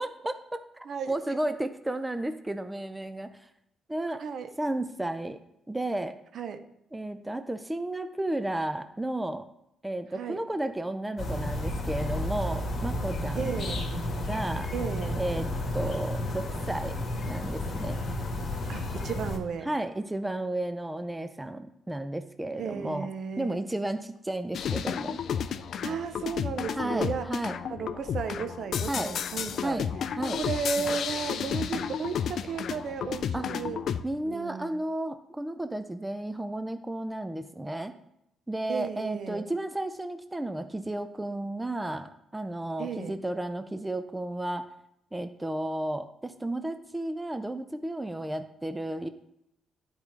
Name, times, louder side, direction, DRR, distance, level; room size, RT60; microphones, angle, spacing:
voice 1, 0.0-3.3 3.9-4.2 4.6-5.4 5.7-6.2 6.9-9.5 9.8-13.5 14.3-14.7 15.2-15.5 15.7-16.9 17.3-18.0 19.6-23.1 23.4-25.2 26.8-27.6 28.9-29.1 29.6-29.9 30.2-30.4 33.3-33.5 34.0-38.0 38.5-44.6 45.1-49.1, right 1 dB, 10° right, 10 dB, 0.4 m, -33 dB
voice 2, 4.2-4.5 6.3-6.6 10.1-10.4 13.4-13.8 14.7-15.2 18.7-19.7 22.6-23.6 25.8-27.3 27.6-29.8 30.4-33.8 34.2-34.8 38.7-39.5 42.8-43.2, right 6 dB, 60° right, 9 dB, 0.6 m, -34 dB
sound 1, 11.2-19.4, left 1 dB, 50° left, 1.6 m, -32 dB
sound 2, 24.5-34.0, left 8 dB, 65° left, 0.4 m, -32 dB
10.5 x 4.8 x 3.3 m, 0.80 s
cardioid pair, 90°, 0 cm